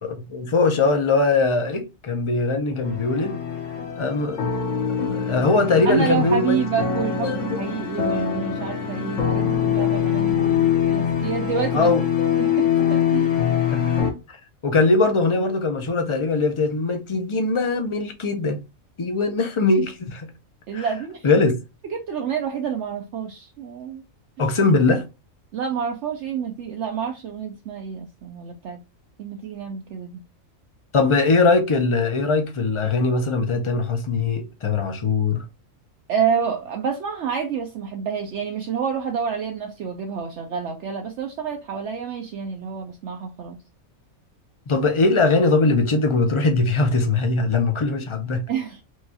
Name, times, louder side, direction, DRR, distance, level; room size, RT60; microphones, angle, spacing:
voice 1, 0.0-3.3 4.0-6.6 7.2-7.6 11.7-12.0 13.7-14.0 14.3-14.4 14.6-18.6 19.0-20.3 20.7-20.9 21.2-21.5 24.4-25.0 30.9-35.4 44.7-48.4, left 3 dB, 40° left, 0.4 m, -21 dB
sound 1, 2.8-14.1, left 8 dB, 70° left, 1.3 m, -23 dB
voice 2, 5.9-11.9 12.3-13.3 20.7-21.2 21.9-24.0 25.5-28.8 29.2-30.2 36.1-43.6 48.5-48.8, right 7 dB, 65° right, 0.8 m, -28 dB
4.6 x 2.3 x 2.8 m
omnidirectional pair, 1.4 m